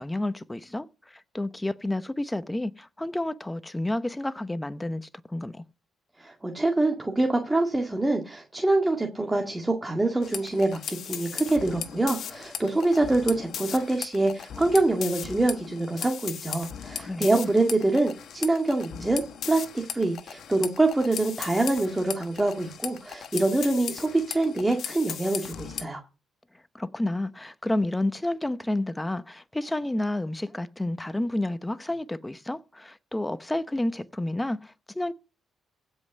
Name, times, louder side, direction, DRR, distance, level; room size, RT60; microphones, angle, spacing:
voice 1, 0.0-5.6 17.0-17.5 26.7-35.1, left 1 dB, 10° left, 0.8 m, -30 dB
voice 2, 6.2-26.0, right 2 dB, 15° right, 1.9 m, -25 dB
sound 1, 10.2-25.9, left 8 dB, 65° left, 1.2 m, -38 dB
16.0 x 5.5 x 6.5 m
cardioid pair, 90°, 0 cm